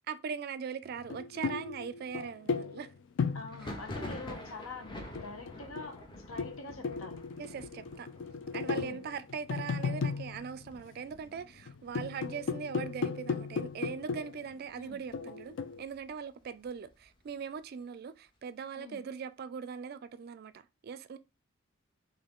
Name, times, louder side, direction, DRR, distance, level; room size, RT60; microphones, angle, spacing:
voice 1, 0.1-2.9 7.4-8.1 8.5-21.2, right 6 dB, 50° right, 0.3 m, -40 dB
sound 1, 1.0-4.5 5.0-11.2 11.6-14.5 15.1-15.8, left 5 dB, 60° left, 0.4 m, -36 dB
voice 2, 3.3-6.0 6.3-7.2 8.7-9.0 14.7-15.0 18.8-19.0, left 3 dB, 90° left, 0.8 m, -45 dB
Thunder, 3.5-13.0 13.3-13.9 14.2-15.2 15.6-17.3, left 1 dB, 25° left, 0.7 m, -48 dB
3.7 x 2.6 x 3.6 m
head